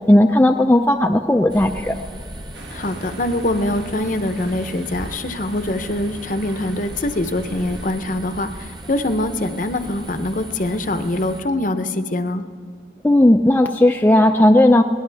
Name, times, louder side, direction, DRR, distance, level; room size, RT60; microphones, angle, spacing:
voice 1, 0.1-2.0 13.0-14.8, left 1 dB, 10° left, 4 dB, 0.4 m, -14 dB
sound 1, 1.5-11.4, right 1 dB, 20° right, 1.1 m, -37 dB
sound 2, 2.5-7.9, right 1 dB, 85° right, 1.9 m, -40 dB
voice 2, 2.7-12.4, left 1 dB, 45° left, 9 dB, 0.7 m, -24 dB
21.0 x 18.5 x 3.4 m, 2.3 s
head